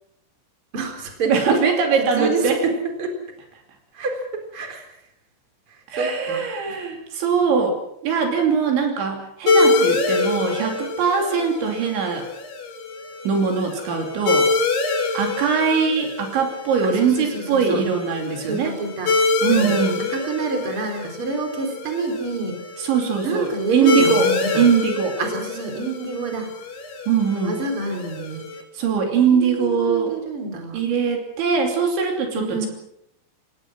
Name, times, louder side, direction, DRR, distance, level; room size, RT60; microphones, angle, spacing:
voice 1, 0.7-1.3 2.2-3.1 3.9-5.0 5.7-6.4 9.6-9.9 16.8-17.8 18.5-19.1 19.5-22.6 23.2-24.7 25.2-26.5 27.3-28.5 29.3-30.8 32.3-32.7, right 3 dB, 30° right, 4 dB, 4.4 m, -27 dB
voice 2, 1.3-2.6 5.9-12.3 13.3-14.5 15.2-18.7 19.4-20.0 22.8-24.3 24.6-25.2 27.1-27.6 28.8-30.2 30.7-32.7, right 6 dB, 70° right, 3 dB, 5.2 m, -21 dB
sound 1, 9.5-28.6, left 3 dB, 60° left, 4.6 m, -25 dB
27.5 x 18.5 x 6.2 m, 0.78 s
omnidirectional pair, 5.5 m